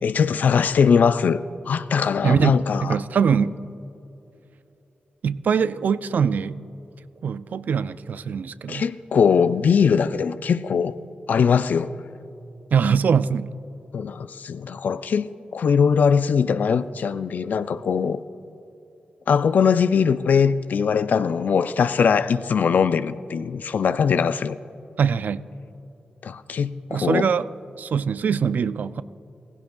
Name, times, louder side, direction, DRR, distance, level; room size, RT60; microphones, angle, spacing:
voice 1, 0.0-1.4 1.7-3.0 8.7-10.9 11.3-11.9 13.9-18.2 19.3-24.6 26.2-27.3, left 6 dB, 70° left, 0.4 m, -21 dB
voice 2, 2.2-3.6 5.2-6.6 7.2-8.9 12.7-13.5 25.0-25.4 26.9-27.5 27.8-29.0, right 6 dB, 70° right, 0.3 m, -22 dB
16.5 x 16.0 x 2.3 m
cardioid pair, 80°, 3 cm